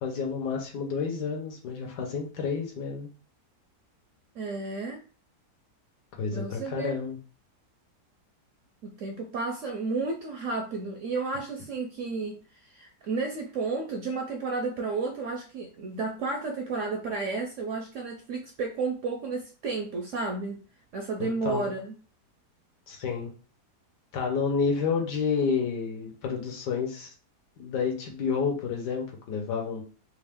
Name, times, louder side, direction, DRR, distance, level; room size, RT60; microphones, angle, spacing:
voice 1, 0.0-3.1 6.2-7.2 21.2-21.7 22.9-23.3 24.1-27.1 27.6-29.8, left 5 dB, 75° left, 1 dB, 1.5 m, -30 dB
voice 2, 4.3-5.0 6.3-7.0 8.8-20.6 20.9-21.9, right 3 dB, 70° right, 2 dB, 0.7 m, -32 dB
3.5 x 2.5 x 3.4 m, 0.37 s
omnidirectional pair, 1.8 m